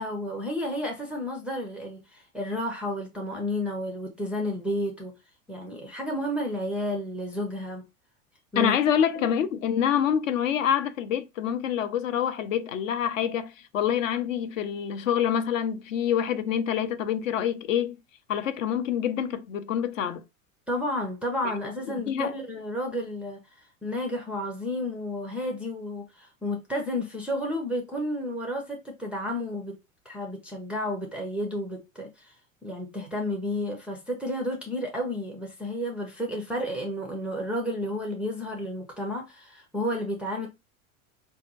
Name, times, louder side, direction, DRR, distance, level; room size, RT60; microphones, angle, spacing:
voice 1, 0.0-5.1 5.5-7.8 8.5-8.8 9.1-9.4 20.7-23.4 23.8-29.8 30.1-32.3 32.6-40.5, left 1 dB, 5° right, 0.4 m, -31 dB
voice 2, 8.5-18.0 18.3-20.2 22.1-22.3, left 9 dB, 65° left, 0.6 m, -26 dB
4.1 x 2.3 x 2.6 m
figure-of-eight pair, 85°, 43 cm